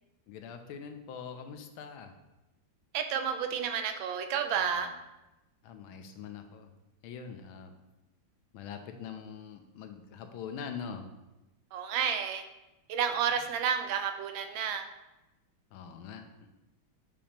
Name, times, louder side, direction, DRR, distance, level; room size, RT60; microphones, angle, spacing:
voice 1, 0.3-2.1 5.6-6.7 7.0-7.7 8.5-11.1 15.7-16.2, left 7 dB, 85° left, 6 dB, 1.5 m, -43 dB
voice 2, 2.9-4.9 11.7-12.5 12.9-14.9, right 7 dB, 80° right, 7 dB, 1.3 m, -31 dB
7.1 x 2.9 x 5.0 m, 1.0 s
omnidirectional pair, 2.2 m